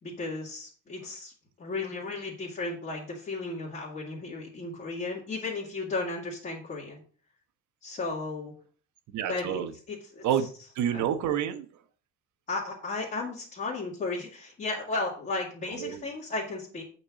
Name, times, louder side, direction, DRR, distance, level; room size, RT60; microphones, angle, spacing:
voice 1, 0.0-1.3 1.6-7.0 7.8-8.5 9.3-9.6 9.9-10.2 10.9-11.0 12.5-16.8, left 3 dB, 25° left, 2.7 m, -34 dB
voice 2, 9.1-9.7 10.2-11.7 15.8-16.0, right 9 dB, 65° right, 1.2 m, -29 dB
8.7 x 4.6 x 7.5 m
cardioid pair, 170°, 32 cm